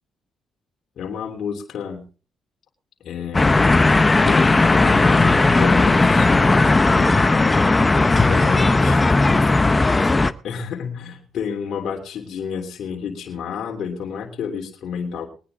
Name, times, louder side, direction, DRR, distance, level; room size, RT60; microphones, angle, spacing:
voice 1, 1.0-2.1 3.0-3.7 4.2-7.7 8.3-9.0 10.4-15.3, left 7 dB, 70° left, 3.2 m, -30 dB
sound 1, 3.3-10.3, left 3 dB, 20° left, 0.7 m, -16 dB
voice 2, 7.9-10.2, right 4 dB, 35° right, 3.7 m, -38 dB
22.0 x 9.8 x 3.6 m
cardioid pair, 90°, 0 cm